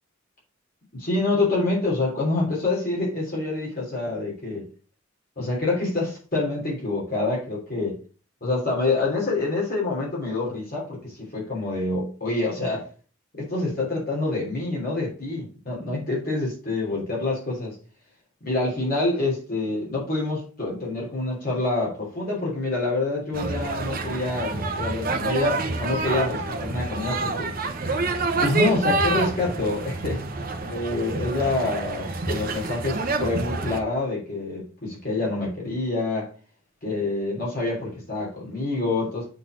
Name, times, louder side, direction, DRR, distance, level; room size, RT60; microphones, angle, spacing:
voice 1, 1.0-4.7 5.4-8.0 8.4-12.9 13.3-17.8 18.4-27.5 28.4-30.2 30.7-36.3 36.8-39.3, left 2 dB, 45° left, 3.0 m, -27 dB
sound 1, 23.3-33.8, right 3 dB, 45° right, 1.0 m, -27 dB
8.0 x 4.2 x 5.0 m
head